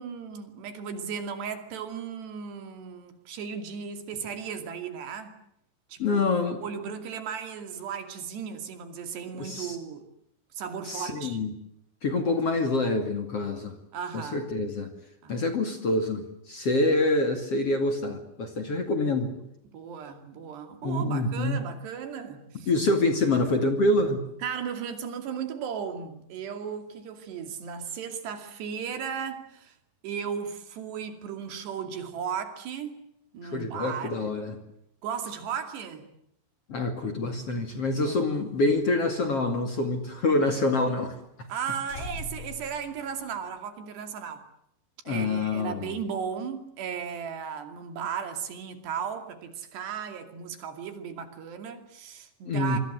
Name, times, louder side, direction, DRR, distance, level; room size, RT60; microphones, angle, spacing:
voice 1, 0.0-5.4 5.9-6.2 6.6-10.1 10.5-11.4 13.9-14.4 15.2-15.5 19.6-22.7 24.4-29.7 30.0-33.0 33.3-34.3 35.0-36.1 37.9-38.2 41.5-44.4 45.1-52.8, right 7 dB, 70° right, 7 dB, 4.6 m, -36 dB
voice 2, 6.0-6.6 9.4-9.8 10.9-11.5 12.0-13.7 14.1-14.9 15.3-19.3 20.8-21.6 22.7-24.2 33.4-34.6 36.7-41.2 45.1-45.9 52.4-52.8, left 2 dB, 40° left, 6 dB, 2.8 m, -26 dB
sound 1, 37.6-40.4 40.7-40.8 41.1-41.2 41.5-41.6 41.9-43.6, left 2 dB, 85° left, 7.3 m, -44 dB
26.0 x 25.0 x 8.0 m, 0.76 s
omnidirectional pair, 5.1 m